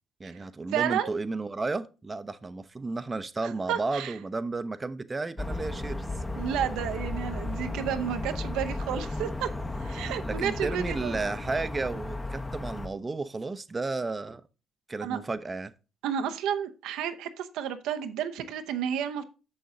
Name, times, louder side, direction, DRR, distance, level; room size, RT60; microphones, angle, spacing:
voice 1, 0.2-6.1 10.2-14.4 14.9-15.7, right 3 dB, 30° right, 0.6 m, -33 dB
voice 2, 0.7-1.1 3.4-4.1 6.4-9.5 9.8-11.2 15.0-15.2 16.0-19.2, right 9 dB, 75° right, 0.7 m, -31 dB
sound 1, 5.4-12.9, left 2 dB, 25° left, 0.9 m, -34 dB
6.7 x 6.4 x 3.8 m
hypercardioid pair, 45°, 0 cm